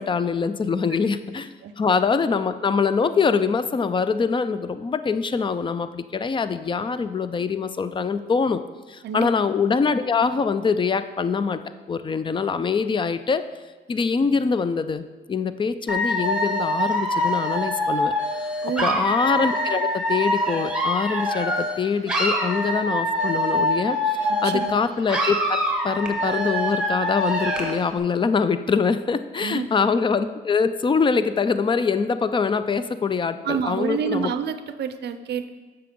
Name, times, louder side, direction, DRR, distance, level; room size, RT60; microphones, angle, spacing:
voice 1, 0.0-8.6 8.9-11.6 11.9-13.4 13.9-18.1 18.6-25.4 25.8-34.3, left 5 dB, 25° left, 12 dB, 0.4 m, -24 dB
Dog / Alarm, 15.9-21.8 22.1-24.8 25.1-27.8, equal, 5° right, 1.2 m, -24 dB
voice 2, 18.6-19.0 24.3-24.7 29.4-29.7 33.4-35.5, right 7 dB, 60° right, 10 dB, 0.5 m, -28 dB
7.5 x 6.0 x 3.7 m, 1.3 s
cardioid pair, 90°, 20 cm